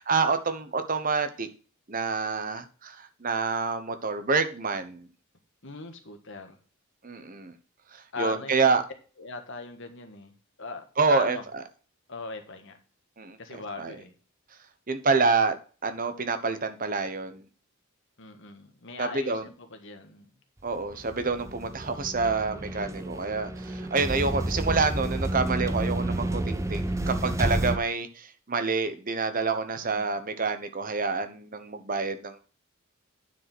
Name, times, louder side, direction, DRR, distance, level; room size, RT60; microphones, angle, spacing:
voice 1, 0.0-1.5 1.9-5.1 7.0-7.5 7.9-8.8 11.0-11.4 13.2-14.0 14.9-15.6 15.8-17.4 19.0-19.5 20.6-32.5, right 4 dB, 40° right, 1.0 m, -27 dB
voice 2, 5.6-6.6 8.1-8.7 9.2-10.3 10.6-11.4 12.1-12.8 13.4-14.1 18.2-20.3 26.9-27.1 29.8-30.2, left 3 dB, 55° left, 1.6 m, -39 dB
sound 1, 20.7-27.8, right 1 dB, 15° right, 0.6 m, -30 dB
9.6 x 5.0 x 6.1 m
head